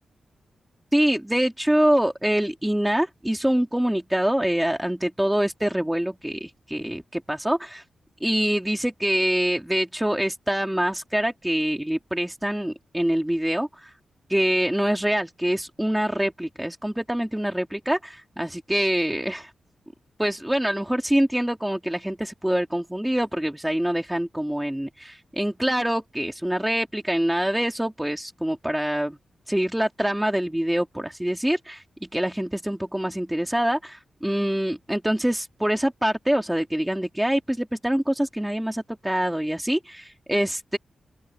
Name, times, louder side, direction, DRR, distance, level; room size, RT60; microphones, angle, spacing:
voice 1, 0.9-7.8 8.2-13.9 14.3-19.5 20.2-29.2 29.5-31.8 32.1-40.8, right 1 dB, 5° right, 1.8 m, -25 dB
open air
wide cardioid pair, 175°, 0 cm